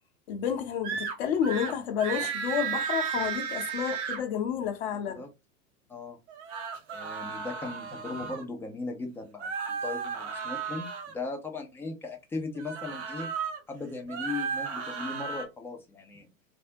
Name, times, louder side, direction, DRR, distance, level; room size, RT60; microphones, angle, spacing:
voice 1, 0.3-5.2, left 8 dB, 50° left, 0.8 m, -30 dB
sound 1, 0.8-1.1 1.4-1.7 2.0-4.2 6.3-8.4 9.4-11.1 12.5-13.6 14.0-15.4, right 6 dB, 55° right, 1.0 m, -34 dB
voice 2, 6.9-13.3 13.7-16.3, left 3 dB, 5° left, 0.5 m, -38 dB
3.5 x 2.0 x 2.6 m
figure-of-eight pair, 95°, 42 cm